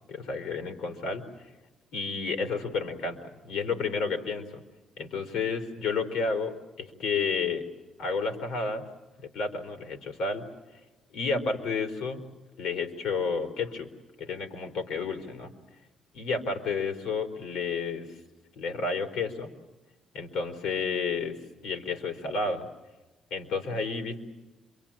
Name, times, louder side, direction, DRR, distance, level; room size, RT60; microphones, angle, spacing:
voice 1, 0.1-1.3 1.9-4.6 5.0-7.6 8.0-8.8 9.2-10.5 11.1-12.2 12.6-13.9 14.2-15.5 16.1-18.2 18.6-19.5 20.1-21.4 21.6-22.7 23.3-24.2, left 4 dB, 90° left, 5 dB, 3.8 m, -31 dB
26.5 x 24.5 x 8.8 m, 1.1 s
cardioid pair, 90°, 0 cm